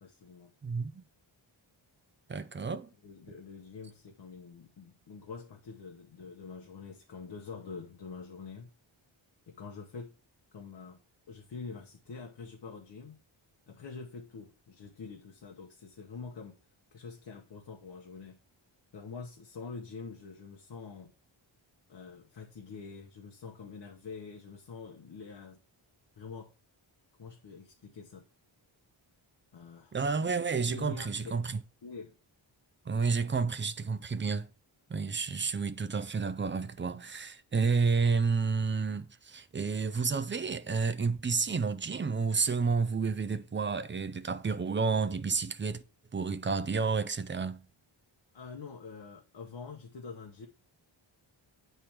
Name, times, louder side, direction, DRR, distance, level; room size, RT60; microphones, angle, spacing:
voice 1, 0.0-0.5 3.0-8.7 9.5-10.1 10.5-11.0 11.3-13.2 13.7-16.6 16.9-18.4 18.9-21.1 21.9-25.6 26.2-26.5 27.2-28.2 29.5-30.0 30.7-31.4 31.8-32.1 48.3-50.5, left 4 dB, 55° left, 1.0 m, -45 dB
voice 2, 0.6-1.0 2.3-2.9 29.9-31.6 32.9-34.5 34.9-45.8 46.1-47.6, right 4 dB, 25° right, 0.4 m, -30 dB
8.6 x 3.4 x 4.4 m
wide cardioid pair, 160°, 48 cm